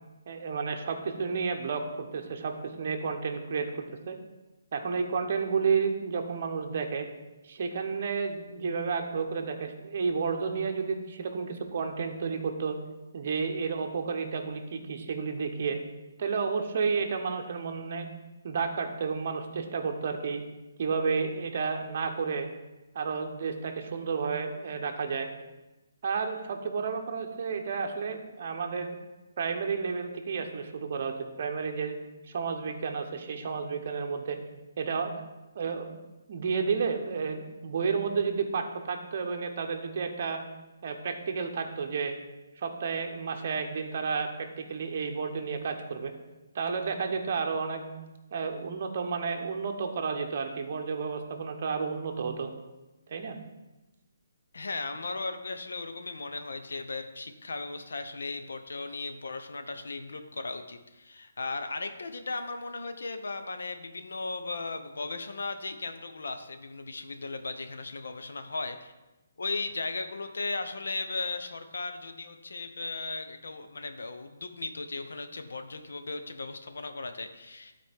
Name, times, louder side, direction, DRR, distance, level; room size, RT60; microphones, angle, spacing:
voice 1, 0.3-4.2 4.7-7.1 7.4-12.8 13.1-15.8 16.2-18.1 18.4-20.4 20.8-22.5 22.9-25.3 26.0-29.0 29.4-32.0 32.3-34.4 34.8-35.1 35.5-35.9 36.3-40.4 40.8-42.2 42.6-46.1 46.5-47.8 48.3-52.5 53.1-53.4, right 5 dB, 40° right, 4 dB, 0.9 m, -31 dB
voice 2, 54.5-68.9 69.4-77.7, left 3 dB, 85° left, 7 dB, 0.8 m, -36 dB
12.5 x 4.3 x 3.6 m, 1.1 s
hypercardioid pair, 170°, 0 cm